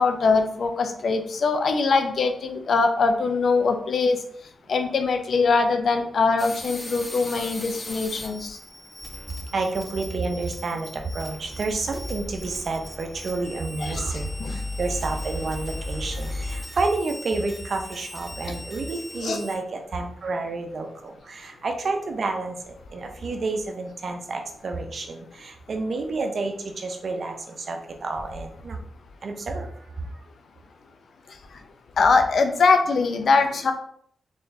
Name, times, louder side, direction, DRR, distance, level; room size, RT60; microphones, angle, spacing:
voice 1, 0.0-4.2 4.7-8.6 13.8-14.6 19.2-19.4 32.0-33.7, left 4 dB, 70° left, 6 dB, 0.5 m, -22 dB
sound 1, 6.4-19.6, left 1 dB, 20° left, 0.9 m, -41 dB
sound 2, 9.0-9.7 11.2-16.7, left 1 dB, 5° right, 0.4 m, -35 dB
voice 2, 9.5-14.3 14.8-22.6 22.9-28.8 29.2-29.7, right 3 dB, 60° right, 4 dB, 0.6 m, -29 dB
3.5 x 3.4 x 2.7 m, 0.63 s
supercardioid pair, 50°, 0 cm